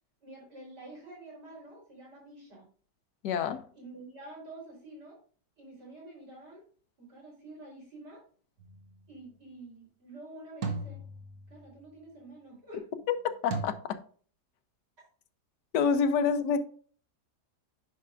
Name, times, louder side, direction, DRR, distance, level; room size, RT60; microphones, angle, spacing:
voice 1, 0.2-2.7 3.7-5.2 5.6-6.6 7.0-8.2 9.1-11.0 11.5-13.0, right 2 dB, 80° right, 4.5 m, -48 dB
voice 2, 3.2-3.7 13.1-14.0 15.7-16.6, left 6 dB, 85° left, 1.3 m, -27 dB
sound 1, 8.6-9.0 10.6-11.8 13.5-13.6, right 4 dB, 60° right, 1.6 m, -37 dB
9.7 x 5.9 x 2.5 m
omnidirectional pair, 1.8 m